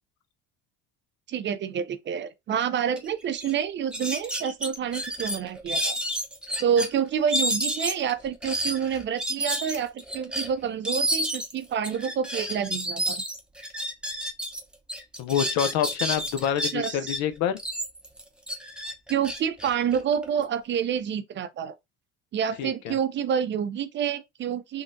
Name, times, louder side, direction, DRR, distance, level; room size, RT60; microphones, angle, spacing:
voice 1, 1.3-6.0 6.6-13.2 16.7-17.0 19.1-21.7 22.3-24.8, right 8 dB, 40° right, 0.5 m, -28 dB
sound 1, 3.0-3.1 3.3-3.5 3.9-6.9 7.3-14.6 14.9-17.2 17.6-20.4, equal, 5° right, 0.7 m, -30 dB
voice 2, 15.2-17.6 22.6-23.0, left 9 dB, 65° left, 0.6 m, -27 dB
3.8 x 2.3 x 2.5 m
supercardioid pair, 90°, 29 cm